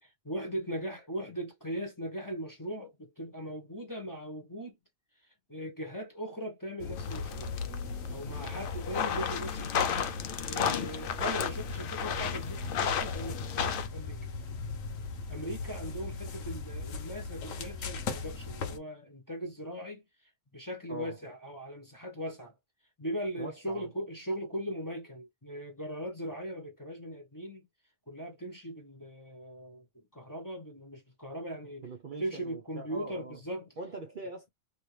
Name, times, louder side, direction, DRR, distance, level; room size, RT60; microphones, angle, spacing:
voice 1, 0.0-4.8 5.5-7.6 8.1-9.9 10.4-14.2 15.3-20.0 20.5-22.5 23.0-27.7 28.1-31.9 32.2-33.7, equal, 15° left, 0.9 m, -39 dB
sound 1, 6.8-18.8, left 4 dB, 90° left, 1.2 m, -38 dB
sound 2, 7.0-13.9, left 8 dB, 60° left, 0.6 m, -33 dB
voice 2, 20.9-21.2 23.4-23.9 31.8-33.4 33.8-34.5, right 3 dB, 50° right, 0.7 m, -42 dB
2.9 x 2.8 x 3.2 m
omnidirectional pair, 1.3 m